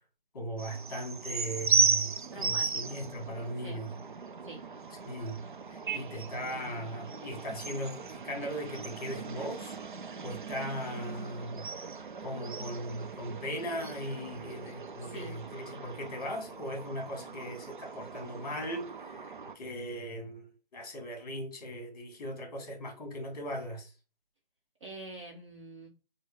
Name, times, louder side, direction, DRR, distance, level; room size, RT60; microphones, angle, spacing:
voice 1, 0.3-3.9 5.0-5.4 5.7-9.8 10.2-11.7 12.2-23.9, equal, 20° left, 1.3 m, -38 dB
sound 1, 0.6-19.6, right 5 dB, 60° right, 0.6 m, -36 dB
voice 2, 2.3-3.0 3.6-3.8 4.5-4.6 15.0-15.4 24.8-25.9, right 2 dB, 30° right, 1.0 m, -45 dB
6.0 x 2.2 x 3.3 m
figure-of-eight pair, 155°, 29 cm